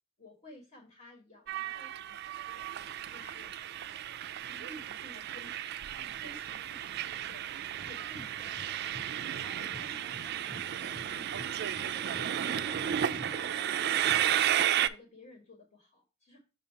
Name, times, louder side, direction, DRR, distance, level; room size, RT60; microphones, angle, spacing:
voice 1, 0.2-3.5 4.5-7.5 7.8-11.6 12.1-16.4, left 1 dB, 40° left, 0 dB, 1.6 m, -54 dB
Train, 1.5-14.9, right 10 dB, 55° right, 0.3 m, -33 dB
sound 1, 7.8-14.4, left 2 dB, 20° left, 0.5 m, -50 dB
6.6 x 2.8 x 5.6 m, 0.31 s
head